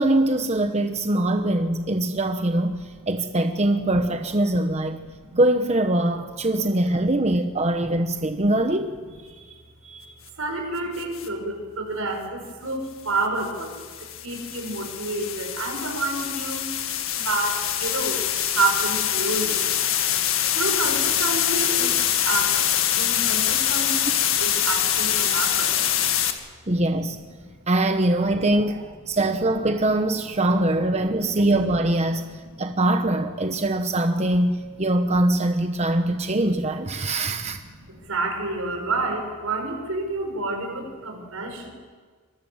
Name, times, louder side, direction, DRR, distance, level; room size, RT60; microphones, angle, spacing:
voice 1, 0.0-5.0 5.3-8.9 26.7-27.2 27.7-32.3 32.6-37.6, right 1 dB, 30° right, 6 dB, 1.0 m, -22 dB
voice 2, 4.9-5.3 6.7-7.0 7.4-7.5 7.9-8.0 8.2-8.6 9.3-16.7 17.2-18.2 18.5-19.6 19.9-20.0 20.5-22.0 22.2-24.0 24.4-25.7 27.4-27.5 31.2-31.5 32.2-32.8 33.6-33.7 34.7-34.8 37.1-37.2 37.7-41.7, right 3 dB, 85° right, 3 dB, 5.9 m, -30 dB
sound 1, 11.0-11.3 13.4-26.3, left 10 dB, 70° left, 2.0 m, -24 dB
25.0 x 22.0 x 7.4 m, 1.5 s
head